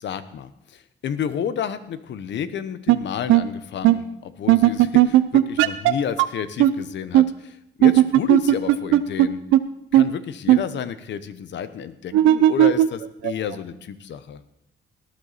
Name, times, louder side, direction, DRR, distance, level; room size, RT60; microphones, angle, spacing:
voice 1, 0.0-9.4 9.9-14.4, left 8 dB, 65° left, 13 dB, 1.0 m, -31 dB
sound 1, 2.9-3.0 3.3-3.4 3.8-4.0 4.5-5.9 6.2-6.3 6.6-6.7 7.1-7.2 7.8-9.3 9.5-9.6 9.9-10.0 10.5-10.6 12.1-13.5, right 14 dB, 90° right, 0.6 m, -15 dB
18.5 x 9.8 x 4.2 m, 0.80 s
cardioid pair, 90°, 20 cm